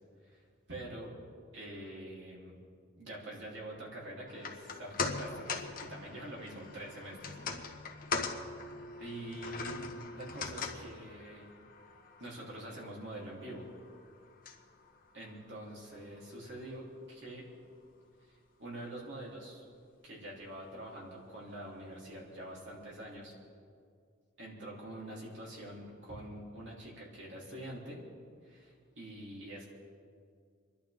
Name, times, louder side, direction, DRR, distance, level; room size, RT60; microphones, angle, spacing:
voice 1, 0.7-1.1 1.5-2.6 2.9-7.4 9.0-11.5 12.2-13.6 15.1-17.5 18.3-19.7 20.0-23.3 24.4-28.0 28.4-29.7, right 1 dB, 60° right, -4 dB, 3.4 m, -45 dB
sound 1, 4.3-16.7 17.0-17.1, left 4 dB, 45° left, 1.2 m, -42 dB
28.5 x 11.5 x 3.6 m, 2.2 s
head